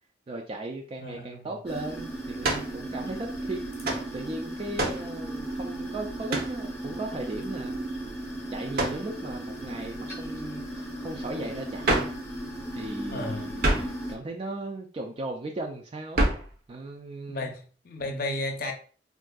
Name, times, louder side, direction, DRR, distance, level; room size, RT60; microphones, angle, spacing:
voice 1, 0.3-3.8 4.1-7.8 8.5-12.1 12.7-16.2 16.7-17.5 18.1-18.3, right 2 dB, 30° right, 2 dB, 0.3 m, -37 dB
voice 2, 1.0-1.5 13.1-13.5 17.3-18.7, left 2 dB, 55° left, 4 dB, 0.6 m, -33 dB
sound 1, 1.6-14.1, right 1 dB, 15° left, 0.8 m, -36 dB
sound 2, 2.4-2.7 3.8-4.1 4.8-5.1 6.3-6.6 8.7-9.1 11.8-12.2 13.6-14.0 16.1-16.5, right 2 dB, 55° right, 0.7 m, -26 dB
3.5 x 2.4 x 2.2 m, 0.41 s
head